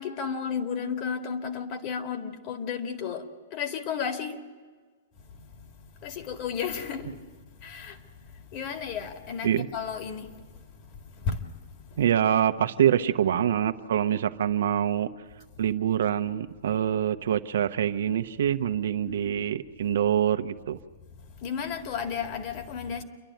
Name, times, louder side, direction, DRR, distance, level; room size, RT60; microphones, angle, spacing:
voice 1, 0.0-4.4 5.3-5.6 6.0-7.3 7.6-12.0 19.0-19.2 21.4-23.0, left 6 dB, 40° left, 5 dB, 2.2 m, -34 dB
voice 2, 12.0-15.1 15.6-20.8, right 10 dB, 80° right, 10 dB, 1.0 m, -25 dB
28.5 x 11.5 x 9.2 m, 1.5 s
hypercardioid pair, 135°, 0 cm